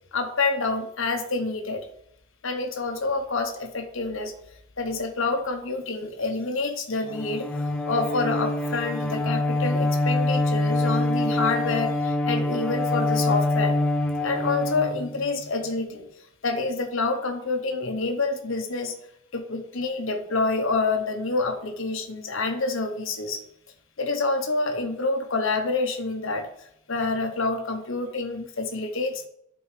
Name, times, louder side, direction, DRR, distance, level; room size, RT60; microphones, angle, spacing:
voice 1, 0.1-1.9 2.4-4.3 4.8-7.5 7.9-13.7 14.2-16.0 16.4-19.0 19.3-23.4 24.0-26.5 26.9-29.3, left 3 dB, 60° left, 5 dB, 0.9 m, -27 dB
Bowed string instrument, 7.1-15.5, left 2 dB, 5° left, 0.5 m, -25 dB
11.0 x 4.5 x 3.3 m, 0.73 s
head